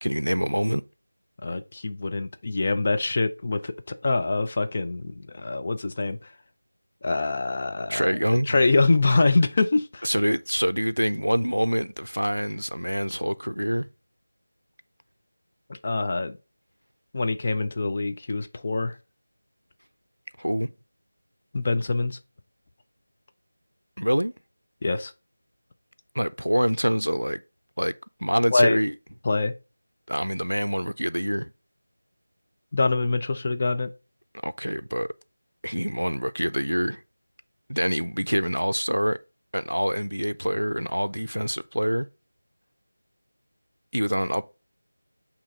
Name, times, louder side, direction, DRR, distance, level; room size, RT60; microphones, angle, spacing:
voice 1, 0.0-0.8 7.9-8.6 10.0-13.9 20.4-20.7 24.0-24.3 26.1-27.4 27.8-27.9 28.2-28.9 30.1-31.5 34.4-35.1 35.6-37.0 37.7-39.2 39.5-42.1 43.9-44.4, equal, 90° right, 0.4 m, -25 dB
voice 2, 1.4-6.2 7.0-10.1 15.8-16.4 17.1-18.9 21.5-22.2 24.8-25.1 28.5-28.8 29.2-29.5 32.7-33.9, left 3 dB, 30° left, 0.5 m, -24 dB
8.4 x 2.9 x 3.8 m
figure-of-eight pair, 170°, 0 cm